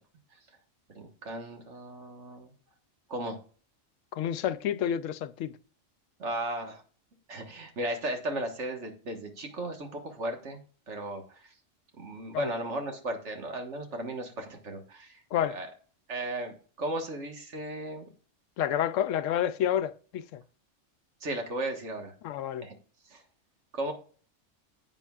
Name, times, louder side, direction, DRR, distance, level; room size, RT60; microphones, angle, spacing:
voice 1, 0.9-2.5 3.1-3.4 6.2-6.8 7.3-10.6 10.9-11.5 12.0-15.2 15.5-15.7 16.1-18.0 21.2-22.1 22.6-22.7 23.1-23.2 23.7-23.9, right 1 dB, 70° right, 1.8 m, -35 dB
voice 2, 4.1-5.5 12.3-12.5 15.3-15.6 18.6-20.4 22.2-22.7, left 10 dB, 85° left, 0.9 m, -29 dB
9.9 x 8.0 x 2.4 m
omnidirectional pair, 1.3 m